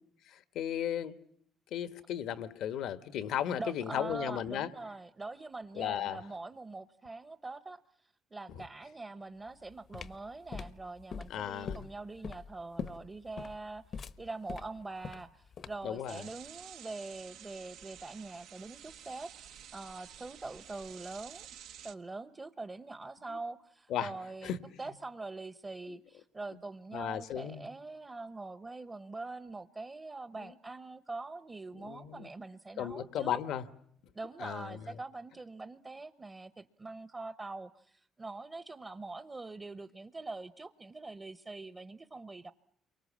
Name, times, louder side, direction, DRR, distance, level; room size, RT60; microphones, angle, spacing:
voice 1, 0.2-1.1 1.7-4.7 5.8-6.2 8.6-8.7 11.3-11.9 15.8-16.2 23.3-23.4 23.9-24.1 24.4-24.6 25.9-26.0 26.9-27.7 30.3-30.5 31.8-32.3 32.8-33.6 34.4-34.8, left 10 dB, 75° left, 1.3 m, -35 dB
voice 2, 3.6-13.8 14.2-21.5 21.8-24.5 24.8-33.4 34.1-42.5, right 3 dB, 25° right, 1.0 m, -44 dB
sound 1, 9.5-16.0, left 6 dB, 55° left, 1.0 m, -43 dB
sound 2, 16.1-21.9, right 10 dB, 80° right, 1.1 m, -51 dB
29.5 x 24.0 x 7.4 m
supercardioid pair, 70°, 0 cm